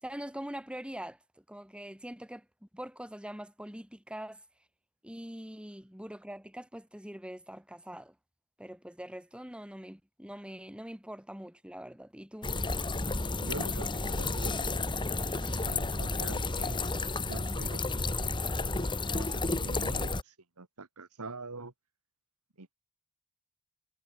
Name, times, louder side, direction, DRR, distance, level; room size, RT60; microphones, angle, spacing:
voice 1, 0.0-2.5 2.7-4.4 5.0-8.2 8.6-12.5, equal, 5° right, 4.0 m, -43 dB
sound 1, 12.4-20.2, left 3 dB, 20° left, 1.4 m, -32 dB
voice 2, 13.4-14.7 15.4-18.4 18.7-21.7 22.6-22.7, right 3 dB, 80° right, 2.1 m, -45 dB
head